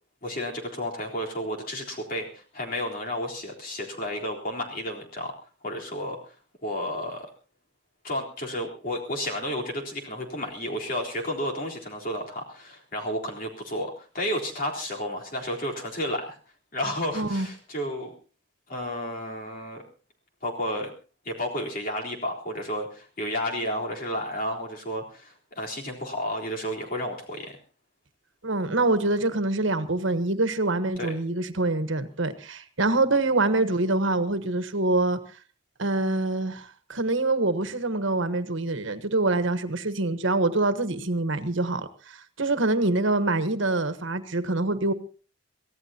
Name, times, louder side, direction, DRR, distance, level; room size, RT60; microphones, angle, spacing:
voice 1, 0.2-5.3 5.6-6.2 6.6-7.3 8.0-16.4 16.7-18.1 18.7-19.8 20.4-20.9 21.3-27.6 31.0-31.1, left 1 dB, 45° left, 3.8 m, -32 dB
voice 2, 17.1-17.5 28.4-35.2 35.8-44.9, right 2 dB, 75° right, 1.3 m, -25 dB
24.5 x 16.0 x 2.9 m
head